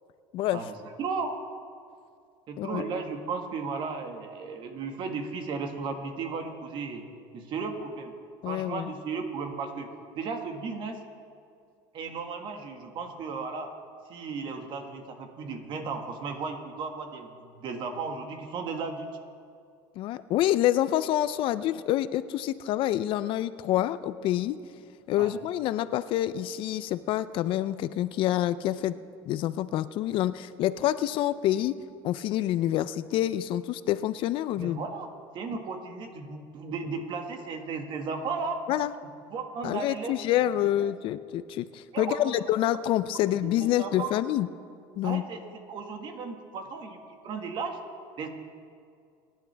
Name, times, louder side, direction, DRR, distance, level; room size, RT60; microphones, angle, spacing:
voice 1, 0.5-1.3 2.5-7.1 7.3-8.2 8.4-11.0 11.9-13.7 14.1-19.1 25.2-25.3 34.5-35.1 35.3-38.6 39.3-40.1 40.8-40.9 41.9-42.3 43.4-44.1 45.0-45.4 45.7-47.0 47.2-47.8 48.2-48.3, right 4 dB, 50° right, 4 dB, 1.8 m, -35 dB
voice 2, 8.4-8.9 20.0-24.6 25.1-29.0 29.3-31.8 32.0-34.8 38.7-38.9 39.6-44.5 45.0-45.2, left 13 dB, 55° left, 14 dB, 0.5 m, -27 dB
23.0 x 11.0 x 3.4 m, 2.3 s
supercardioid pair, 115°, 10 cm